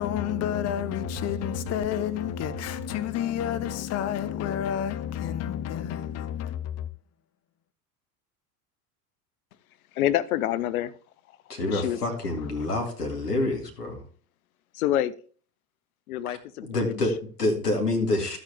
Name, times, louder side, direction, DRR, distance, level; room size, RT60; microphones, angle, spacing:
voice 1, 0.0-6.9, left 9 dB, 35° left, 1.0 m, -29 dB
voice 2, 10.0-10.9 11.7-12.0 14.7-15.1 16.1-16.4 16.7-16.9, left 12 dB, 65° left, 1.0 m, -26 dB
voice 3, 11.5-14.0 16.3-18.4, left 2 dB, 80° left, 2.4 m, -27 dB
12.5 x 7.9 x 3.5 m
figure-of-eight pair, 75°, 47 cm